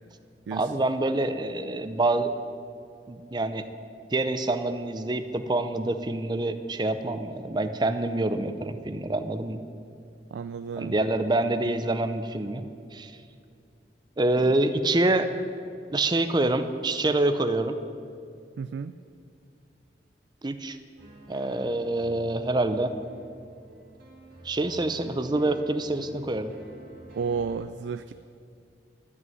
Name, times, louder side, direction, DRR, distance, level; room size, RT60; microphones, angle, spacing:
voice 1, 0.5-2.3 3.1-3.7 4.1-9.6 10.8-13.1 14.2-15.3 15.9-17.8 20.4-20.8 21.3-22.9 24.4-26.5, right 2 dB, 25° right, 9 dB, 0.6 m, -26 dB
voice 2, 10.3-11.0 14.5-14.6 18.6-18.9 27.2-28.1, right 5 dB, 85° right, 11 dB, 0.3 m, -32 dB
sound 1, 21.0-27.6, right 2 dB, 55° right, 2.2 m, -49 dB
13.5 x 6.1 x 9.2 m, 2.4 s
head